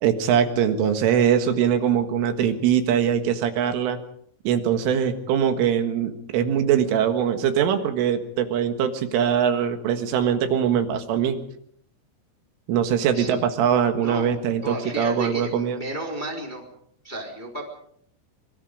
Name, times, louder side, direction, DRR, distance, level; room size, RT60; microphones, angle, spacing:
voice 1, 0.0-4.0 4.5-11.4 12.7-15.8, right 8 dB, 80° right, 7 dB, 4.1 m, -22 dB
voice 2, 14.0-14.3 14.6-16.7 17.0-17.6, right 1 dB, 10° left, 0 dB, 3.1 m, -32 dB
24.5 x 24.0 x 5.1 m, 0.66 s
omnidirectional pair, 5.8 m